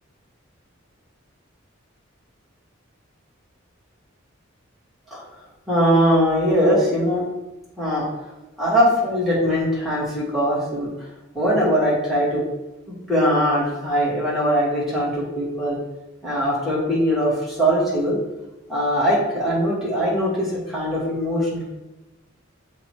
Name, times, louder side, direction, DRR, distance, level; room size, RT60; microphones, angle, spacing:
voice 1, 5.7-7.3 7.8-8.1 8.6-10.9 11.3-12.4 12.9-15.8 16.2-18.2 18.7-21.7, equal, ahead, -8 dB, 2.2 m, -21 dB
6.8 x 2.9 x 4.8 m, 1.0 s
head